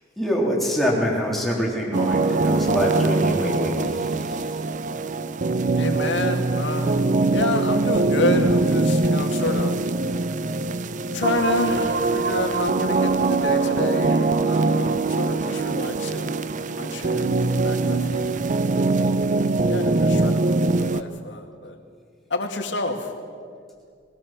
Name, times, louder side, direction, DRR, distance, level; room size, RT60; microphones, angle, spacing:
voice 1, 0.2-4.5, equal, ahead, -3 dB, 3.5 m, -25 dB
sound 1, 1.9-21.0, right 3 dB, 40° right, 0.5 m, -22 dB
voice 2, 5.8-9.8 11.1-18.3 18.7-19.2 19.6-21.8 22.3-23.1, left 2 dB, 65° left, 3 dB, 2.3 m, -29 dB
21.0 x 16.5 x 7.5 m, 2.1 s
head